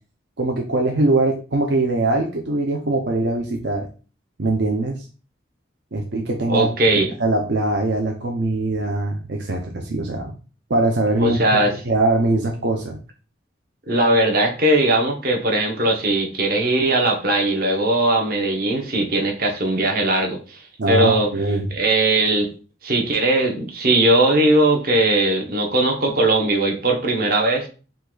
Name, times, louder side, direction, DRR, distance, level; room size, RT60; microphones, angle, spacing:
voice 1, 0.4-3.9 4.4-5.1 5.9-6.7 7.2-10.3 10.7-13.0 20.8-21.7, right 2 dB, 65° right, 2 dB, 0.6 m, -22 dB
voice 2, 6.5-7.1 11.2-11.7 13.9-20.6 20.9-21.3 21.7-22.5 22.8-27.7, right 2 dB, 50° right, 2 dB, 1.0 m, -19 dB
5.4 x 2.4 x 3.9 m, 0.36 s
head